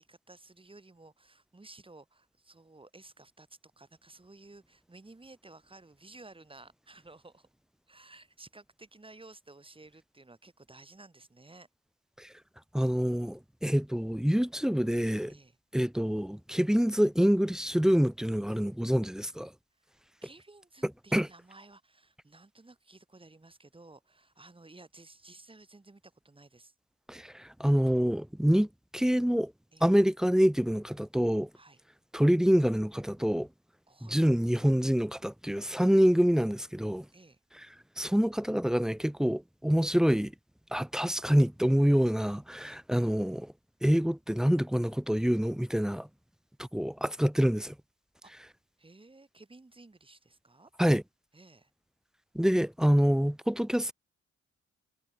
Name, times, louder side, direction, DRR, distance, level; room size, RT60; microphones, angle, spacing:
voice 1, 0.0-7.5 7.9-11.7 15.3-15.6 20.2-26.7 29.7-29.9 31.5-31.8 33.9-34.2 37.1-37.4 42.6-42.8 48.2-48.3 48.8-50.7 51.3-51.7 53.0-53.2, right 2 dB, 15° right, 7.6 m, -54 dB
voice 2, 12.7-15.3 15.7-19.5 21.1-21.3 27.1-28.7 28.9-29.5 29.8-31.5 32.1-33.5 34.1-37.0 38.0-40.3 40.7-43.5 43.8-46.1 46.6-47.7 50.8-51.0 52.3-53.9, equal, ahead, 1.1 m, -26 dB
cardioid pair, 90°, 30 cm